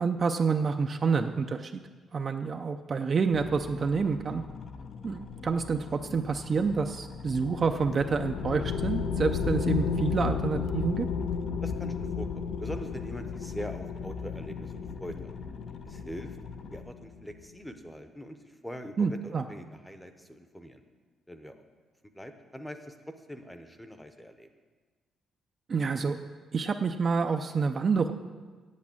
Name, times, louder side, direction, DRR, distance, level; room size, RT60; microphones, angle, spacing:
voice 1, 0.0-1.8 2.1-4.4 5.0-11.1 19.0-19.4 25.7-26.2 26.5-28.1, right 5 dB, 35° right, 6 dB, 0.4 m, -28 dB
sound 1, 3.3-16.8, left 5 dB, 50° left, 0.6 m, -44 dB
sound 2, 7.3-17.3, left 6 dB, 85° left, 0.8 m, -33 dB
voice 2, 11.6-15.3 15.8-16.4 16.7-20.8 21.3-21.6 22.1-23.0 23.3-24.5, equal, 5° left, 7 dB, 0.8 m, -42 dB
8.4 x 7.1 x 8.7 m, 1.4 s
cardioid pair, 130°, 0 cm